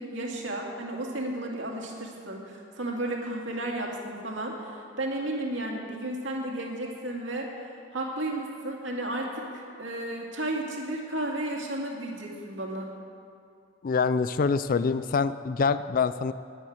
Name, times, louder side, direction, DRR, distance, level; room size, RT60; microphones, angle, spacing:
voice 1, 0.0-7.5 7.9-12.9, right 1 dB, 70° right, 0 dB, 2.4 m, -33 dB
voice 2, 13.8-16.3, left 5 dB, 45° left, 13 dB, 0.4 m, -25 dB
12.5 x 10.0 x 8.8 m, 2.4 s
head